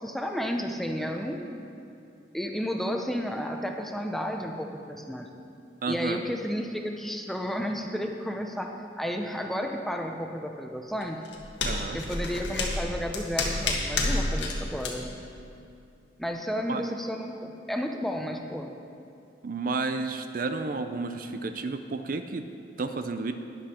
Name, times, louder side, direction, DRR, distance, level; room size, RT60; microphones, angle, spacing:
voice 1, 0.0-1.6 2.3-5.3 5.9-11.2 11.9-15.2 16.2-18.7, equal, ahead, 3 dB, 0.7 m, -32 dB
voice 2, 5.8-6.2 11.6-12.0 16.5-16.8 19.4-22.5 22.8-23.3, right 3 dB, 50° right, 8 dB, 0.5 m, -31 dB
sound 1, 11.0-14.5 14.8-14.9, left 2 dB, 90° left, 1.6 m, -29 dB
13.0 x 10.5 x 4.4 m, 2.6 s
head